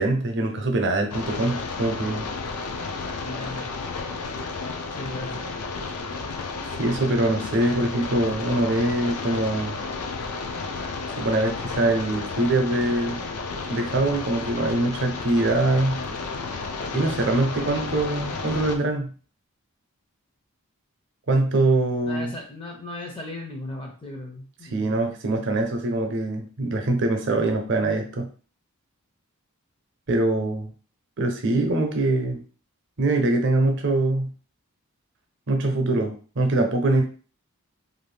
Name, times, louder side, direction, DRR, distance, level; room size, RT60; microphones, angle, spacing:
voice 1, 0.0-2.2 6.8-9.8 11.2-13.2 13.7-16.0 16.9-19.1 21.3-22.3 24.7-28.3 30.1-30.7 31.2-32.4 33.0-34.3 35.5-37.0, right 2 dB, 55° right, 4 dB, 0.6 m, -23 dB
sound 1, 1.1-18.8, left 4 dB, 85° left, 0.5 m, -32 dB
voice 2, 3.2-3.7 5.0-5.5 17.5-17.9 22.0-25.0, left 1 dB, 25° left, 1 dB, 0.5 m, -37 dB
2.6 x 2.4 x 3.3 m, 0.39 s
head